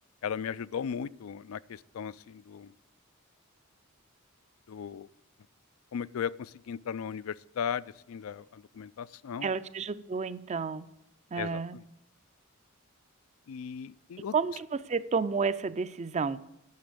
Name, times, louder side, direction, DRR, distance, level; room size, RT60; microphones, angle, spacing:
voice 1, 0.2-2.7 4.7-5.1 5.9-9.5 11.4-11.8 13.5-14.3, left 7 dB, 70° left, 19 dB, 0.4 m, -37 dB
voice 2, 9.4-10.9 11.3-11.8 14.3-16.4, right 5 dB, 30° right, 15 dB, 0.4 m, -31 dB
9.5 x 6.9 x 8.1 m, 0.86 s
head